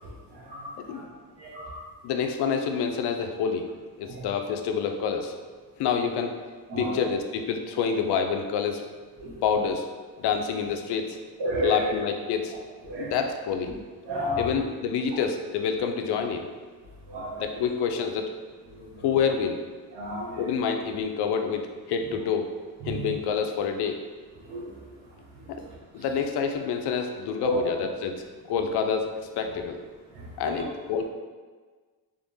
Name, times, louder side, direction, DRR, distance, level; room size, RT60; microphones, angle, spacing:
voice 1, 0.3-1.0 1.4-1.8 4.0-4.2 6.7-7.0 9.2-9.3 11.4-11.9 12.8-13.1 14.0-14.5 17.1-17.4 18.9-19.0 19.9-20.4 22.9-23.1 24.5-24.7 25.4-25.7 27.4-27.6 30.4-30.6, right 1 dB, 85° right, -6 dB, 1.4 m, -31 dB
voice 2, 2.0-3.7 4.0-5.4 5.8-6.4 6.8-8.8 9.4-9.9 10.2-11.2 11.6-12.5 13.0-13.7 14.4-16.5 17.4-18.3 19.0-19.6 20.4-22.5 22.8-24.0 25.5-25.6 25.9-29.8 30.4-31.0, left 6 dB, 85° left, 5 dB, 0.5 m, -27 dB
3.6 x 3.4 x 2.6 m, 1.4 s
cardioid pair, 150°, 38 cm